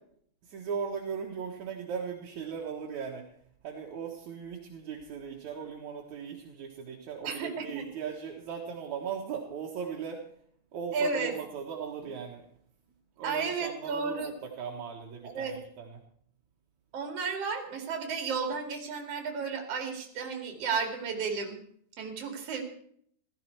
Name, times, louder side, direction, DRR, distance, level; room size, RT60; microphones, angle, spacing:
voice 1, 0.4-3.3 3.6-10.2 10.7-12.5 13.2-14.3 14.6-16.0, right 7 dB, 60° right, 0 dB, 2.1 m, -38 dB
voice 2, 7.2-7.9 10.9-11.4 13.2-14.4 15.2-15.6 16.9-21.6 22.0-22.6, right 5 dB, 40° right, 4 dB, 2.8 m, -33 dB
15.5 x 14.5 x 4.6 m, 0.64 s
omnidirectional pair, 5.0 m